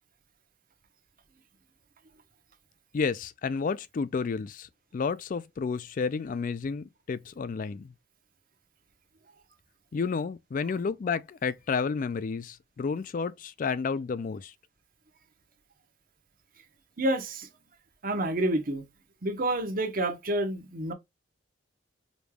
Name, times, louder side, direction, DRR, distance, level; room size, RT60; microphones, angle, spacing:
voice 1, 2.9-4.7 4.9-7.9 9.9-14.5, left 5 dB, 45° left, 0.3 m, -31 dB
voice 2, 17.0-17.5 18.0-18.8 19.2-20.9, right 1 dB, 45° right, 1.0 m, -28 dB
5.2 x 3.2 x 2.3 m
head